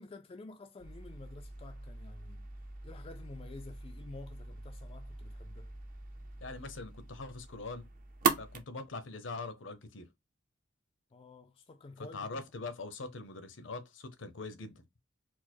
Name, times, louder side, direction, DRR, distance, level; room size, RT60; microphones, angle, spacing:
voice 1, 0.0-2.5 2.8-5.7 11.1-12.4, left 3 dB, 30° left, 0.3 m, -50 dB
sound 1, 0.8-8.6, right 5 dB, 45° right, 0.6 m, -39 dB
voice 2, 6.4-7.9 8.4-10.1 12.1-14.8, left 3 dB, 70° left, 0.8 m, -42 dB
4.5 x 2.1 x 4.3 m
head